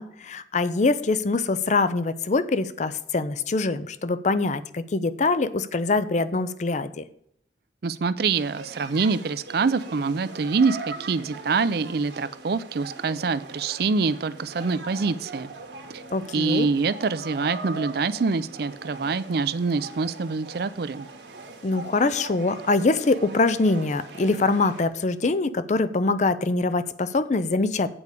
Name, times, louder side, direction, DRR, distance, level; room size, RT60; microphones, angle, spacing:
voice 1, 0.0-7.0 16.1-16.7 21.6-27.9, left 3 dB, 40° left, 14 dB, 0.5 m, -24 dB
voice 2, 7.8-15.5 15.9-16.0 16.3-21.1, right 4 dB, 60° right, 15 dB, 0.5 m, -25 dB
sound 1, 8.3-24.9, right 3 dB, 75° right, 1.5 m, -41 dB
8.7 x 4.8 x 6.6 m, 0.68 s
head